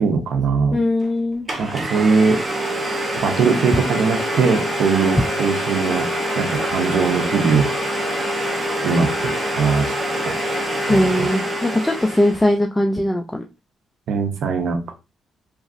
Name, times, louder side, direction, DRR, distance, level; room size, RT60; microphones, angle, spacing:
voice 1, 0.0-0.8 1.6-2.4 3.2-6.1 6.4-7.7 8.8-9.9 10.9-11.3 14.1-14.9, right 5 dB, 70° right, 6 dB, 0.6 m, -20 dB
voice 2, 0.7-1.5 10.9-13.4, left 1 dB, 10° left, 3 dB, 0.3 m, -20 dB
Domestic sounds home sounds, 1.0-1.1 1.5-12.5, equal, 30° right, 0.7 m, -25 dB
3.0 x 2.4 x 2.5 m, 0.28 s
cardioid pair, 90°, 0 cm